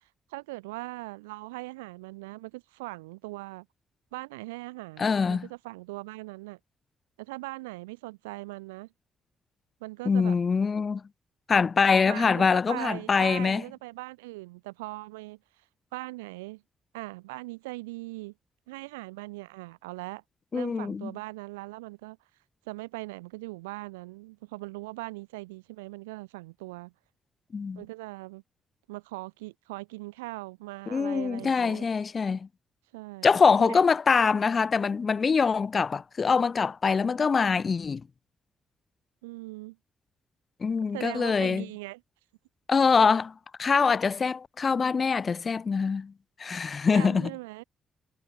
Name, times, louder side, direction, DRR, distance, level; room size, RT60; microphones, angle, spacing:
voice 1, 0.3-3.7 4.1-6.6 7.2-8.9 9.8-10.4 12.0-15.4 15.9-16.6 16.9-18.3 18.7-20.2 20.5-22.2 22.7-26.9 27.7-28.4 28.9-31.9 32.9-33.8 39.2-39.8 40.9-42.0 46.9-47.6, right 22 dB, 85° right, 7.2 m, -40 dB
voice 2, 5.0-5.5 10.1-11.0 11.5-13.6 20.5-21.1 27.5-27.8 30.9-32.5 33.2-38.0 40.6-41.7 42.7-43.3 43.6-46.1 46.4-47.3, left 5 dB, 45° left, 4.1 m, -24 dB
hypercardioid pair, 45°, 0 cm